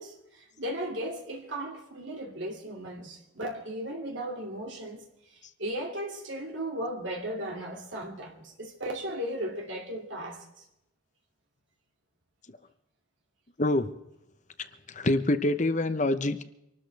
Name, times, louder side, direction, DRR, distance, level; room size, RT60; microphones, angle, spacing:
voice 1, 0.0-5.0 5.3-10.4, right 1 dB, 65° right, 2.6 m, -36 dB
voice 2, 13.6-13.9 14.9-16.4, left 2 dB, 35° left, 0.9 m, -25 dB
25.5 x 13.0 x 3.5 m
head